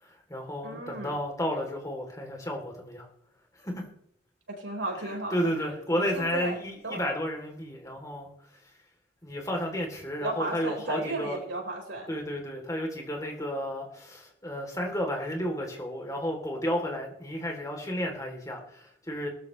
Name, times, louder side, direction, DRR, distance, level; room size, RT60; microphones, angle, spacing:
voice 1, 0.0-3.1 3.6-3.9 5.0-8.3 9.2-11.4 12.1-19.3, equal, 20° left, 1 dB, 3.4 m, -32 dB
voice 2, 0.6-1.2 4.5-5.5 5.9-6.6 6.8-7.0 10.2-12.1, right 2 dB, 90° right, 1 dB, 4.9 m, -34 dB
18.5 x 13.5 x 3.3 m, 0.70 s
head